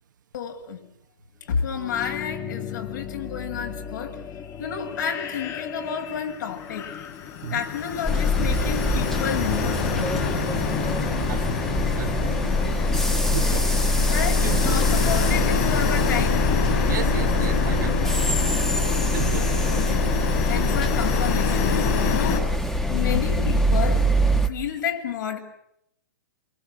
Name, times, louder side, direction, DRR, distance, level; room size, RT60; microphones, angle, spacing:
voice 1, 0.3-0.8 1.5-4.2 4.6-6.9 7.5-10.3 14.1-16.4 19.7-20.1 20.5-22.5 22.9-24.0 24.5-25.4, left 7 dB, 70° left, 3 dB, 7.3 m, -30 dB
sound 1, 1.7-11.5, left 8 dB, 25° left, 1.6 m, -37 dB
sound 2, 6.7-22.4, left 7 dB, 55° left, 6.3 m, -27 dB
sound 3, 8.0-24.5, left 1 dB, 5° left, 1.6 m, -23 dB
voice 2, 12.0-12.3 13.3-13.8 14.4-14.8 16.8-18.1 18.6-18.8 19.1-19.6, right 10 dB, 70° right, 7 dB, 1.9 m, -33 dB
27.5 x 26.0 x 7.7 m, 0.73 s
hypercardioid pair, 130°, 11 cm